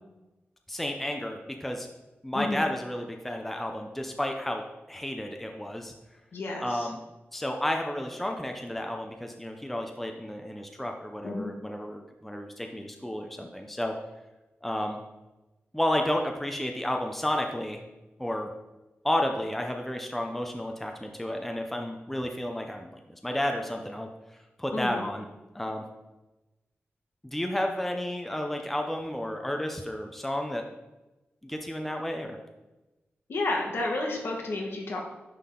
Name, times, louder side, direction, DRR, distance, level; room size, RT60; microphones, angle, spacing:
voice 1, 0.7-1.9 2.2-5.9 6.6-7.0 7.3-13.9 14.6-15.0 15.7-17.8 18.2-18.5 19.0-24.1 24.6-25.2 25.5-25.8 27.2-30.7 31.4-32.4, left 1 dB, 5° left, 3 dB, 0.5 m, -31 dB
voice 2, 2.3-2.6 6.3-6.9 11.2-11.5 24.7-25.1 33.3-35.0, left 2 dB, 65° left, 0 dB, 1.4 m, -31 dB
9.9 x 3.7 x 3.7 m, 1.1 s
wide cardioid pair, 160°, 4 cm